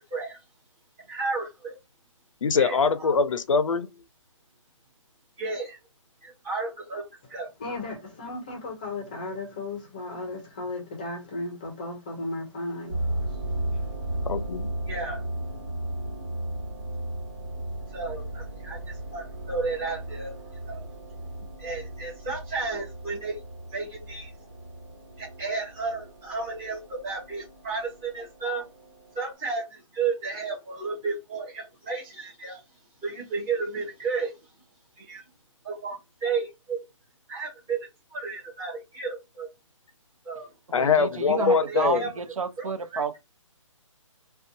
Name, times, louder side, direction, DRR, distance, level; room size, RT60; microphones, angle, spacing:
voice 1, 1.1-1.7 2.6-2.8 3.0-3.2 5.4-5.8 6.2-7.0 7.3-7.5 14.9-15.2 17.9-20.3 20.7-20.9 21.6-23.4 23.7-24.3 25.2-28.7 29.1-32.6 33.0-34.3 35.0-35.2 35.6-36.8 37.3-39.5 40.2-40.5 41.3-42.1 42.6-43.2, right 4 dB, 10° right, 0.8 m, -33 dB
voice 2, 2.4-3.9 14.3-14.7 40.7-42.1, left 5 dB, 75° left, 0.4 m, -23 dB
voice 3, 7.6-13.9, left 2 dB, 15° left, 0.5 m, -35 dB
sound 1, 12.9-29.3, right 1 dB, 55° right, 1.4 m, -36 dB
voice 4, 40.7-43.2, right 4 dB, 90° right, 0.7 m, -30 dB
2.6 x 2.2 x 2.6 m
hypercardioid pair, 170°, 17 cm